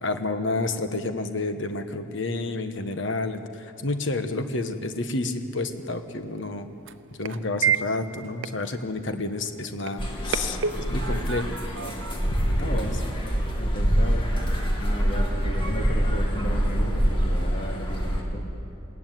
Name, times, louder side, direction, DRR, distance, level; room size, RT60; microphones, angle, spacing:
voice 1, 0.0-3.4 3.8-6.7 7.2-11.5 12.4-12.9, left 2 dB, 60° left, 8 dB, 1.4 m, -30 dB
sound 1, 5.4-13.3, right 7 dB, 65° right, 0.7 m, -33 dB
sound 2, 10.0-18.2, equal, 25° left, 2.4 m, -25 dB
voice 2, 12.6-13.0 13.6-14.3 14.8-18.4, equal, 40° left, 0 dB, 3.2 m, -34 dB
21.0 x 18.0 x 9.4 m, 2.7 s
head